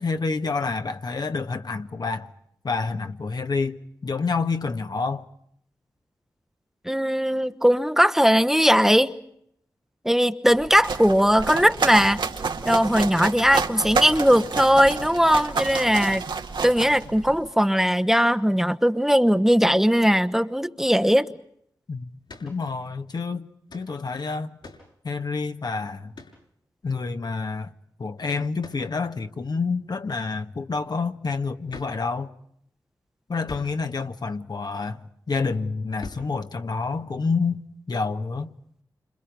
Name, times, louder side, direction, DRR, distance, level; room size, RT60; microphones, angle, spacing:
voice 1, 0.0-2.3 2.6-5.3 21.9-22.1 22.4-24.6 25.0-26.1 26.8-27.7 28.0-32.3 33.3-35.0 35.3-38.5, left 4 dB, 60° left, 1.5 m, -28 dB
voice 2, 6.9-9.2 10.0-12.2 12.6-16.2 16.6-21.3, equal, 5° right, 1.1 m, -19 dB
sound 1, 10.5-17.5, right 4 dB, 80° right, 2.2 m, -29 dB
sound 2, 22.3-22.6 23.7-23.9 24.6-24.9 26.1-26.4 28.6-28.9 31.7-32.1 33.4-33.8 36.0-36.4, left 3 dB, 80° left, 6.2 m, -42 dB
29.0 x 26.5 x 5.3 m
cardioid pair, 55°, 8 cm